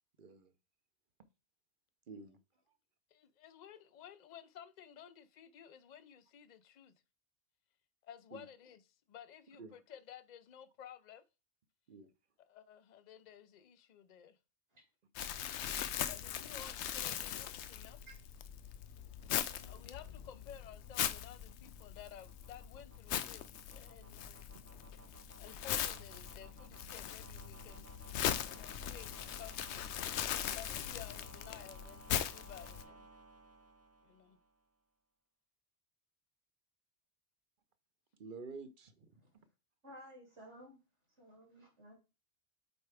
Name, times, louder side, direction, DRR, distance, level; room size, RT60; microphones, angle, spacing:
voice 1, 0.2-0.5 2.1-2.4 8.3-8.4 9.6-9.8 11.9-12.1 19.4-19.6 38.2-39.1, right 4 dB, 50° right, 0.9 m, -50 dB
voice 2, 3.1-6.9 8.0-8.8 9.1-11.2 12.4-14.4 15.5-18.0 19.5-24.5 25.3-27.9 28.4-29.8 30.5-33.1 34.0-34.4, left 9 dB, 50° left, 0.6 m, -54 dB
Crumpling crinkling, 15.2-32.8, left 10 dB, 80° left, 0.9 m, -40 dB
sound 1, 18.4-34.6, right 3 dB, 25° right, 0.4 m, -59 dB
voice 3, 39.8-40.8 41.1-41.9, equal, 80° right, 3.6 m, -55 dB
8.1 x 4.6 x 3.4 m
omnidirectional pair, 1.2 m